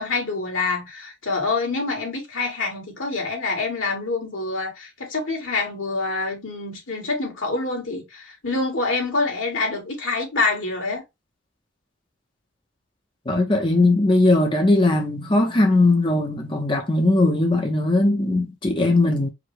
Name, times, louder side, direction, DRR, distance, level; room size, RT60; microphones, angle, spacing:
voice 1, 0.0-11.0, left 3 dB, 90° left, 2.5 m, -26 dB
voice 2, 13.3-19.3, left 2 dB, 25° left, 0.8 m, -19 dB
4.9 x 2.3 x 4.5 m
head